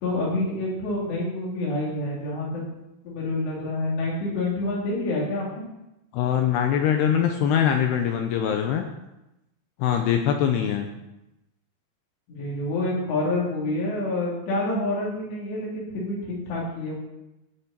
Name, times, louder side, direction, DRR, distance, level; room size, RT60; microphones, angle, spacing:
voice 1, 0.0-2.6 3.0-5.6 12.3-16.9, left 2 dB, 65° left, -4 dB, 5.4 m, -27 dB
voice 2, 6.1-8.8 9.8-10.9, left 9 dB, 80° left, 4 dB, 2.5 m, -23 dB
18.0 x 6.9 x 4.4 m, 0.92 s
omnidirectional pair, 5.4 m